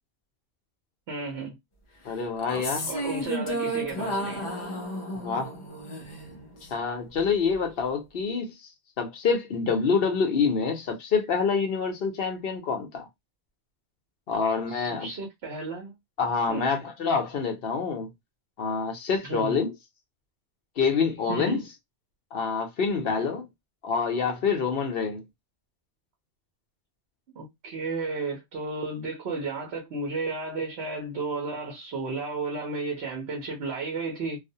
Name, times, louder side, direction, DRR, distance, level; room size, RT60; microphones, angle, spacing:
voice 1, 1.1-1.6 2.9-4.5 14.7-15.9 16.5-16.7 19.2-19.6 21.3-21.6 27.3-34.4, right 3 dB, 80° right, 1.0 m, -33 dB
voice 2, 2.0-2.9 5.1-5.6 6.7-8.7 9.0-13.1 14.3-15.1 16.2-18.1 18.6-19.7 20.8-21.6 22.3-23.5 23.8-25.2, left 5 dB, 65° left, 0.8 m, -26 dB
sound 1, 2.4-6.8, right 1 dB, 40° left, 0.5 m, -32 dB
2.4 x 2.1 x 2.6 m
omnidirectional pair, 1.1 m